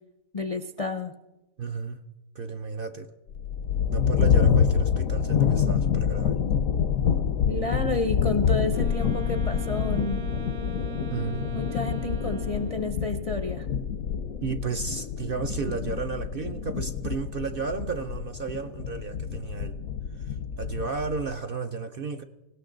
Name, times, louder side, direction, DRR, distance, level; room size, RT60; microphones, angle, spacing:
voice 1, 0.3-1.1 7.5-10.2 11.5-13.7, left 3 dB, 45° left, 8 dB, 0.4 m, -30 dB
voice 2, 1.6-2.0 2.3-3.1 3.9-6.4 11.1-11.5 14.4-19.8 20.2-22.2, right 5 dB, 55° right, 7 dB, 0.6 m, -33 dB
sound 1, 3.3-21.3, left 7 dB, 80° left, 1.1 m, -27 dB
Wind instrument woodwind instrument, 8.7-13.0, right 8 dB, 80° right, 1.6 m, -41 dB
19.0 x 17.5 x 3.9 m, 1.0 s
omnidirectional pair, 1.4 m